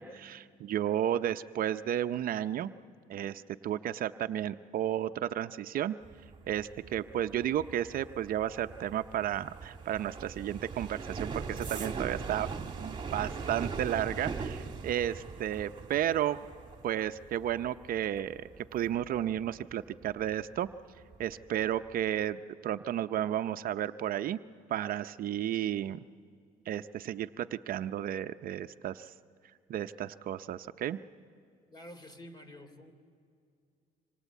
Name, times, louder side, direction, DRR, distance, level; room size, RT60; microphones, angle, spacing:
voice 1, 0.0-2.7 3.1-6.0 6.5-16.4 16.8-20.7 21.2-24.4 24.7-26.0 26.7-29.1 29.7-31.0, right 11 dB, 60° right, 10 dB, 0.6 m, -33 dB
sound 1, 6.0-20.7 21.0-21.4 21.7-22.1, right 5 dB, 25° right, 2.2 m, -41 dB
voice 2, 31.7-32.9, left 1 dB, 25° left, 9 dB, 3.0 m, -49 dB
26.5 x 25.5 x 8.3 m, 2.3 s
cardioid pair, 110°, 17 cm